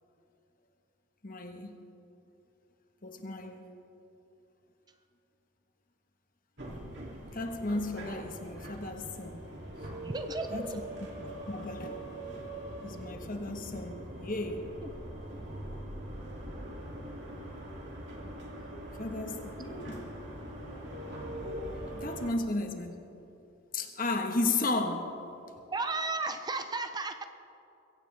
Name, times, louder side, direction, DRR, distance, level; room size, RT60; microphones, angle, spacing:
voice 1, 1.2-1.8 3.0-3.6 7.3-9.4 10.5-10.8 11.5-12.0 12.8-14.7 19.0-20.0 21.4-23.1 23.7-25.1, left 2 dB, 45° left, 1.3 m, -34 dB
sound 1, 6.6-22.3, right 1 dB, 60° right, 2.8 m, -42 dB
voice 2, 10.0-10.8 25.7-27.2, right 3 dB, 20° right, 0.5 m, -34 dB
22.5 x 16.0 x 3.4 m
head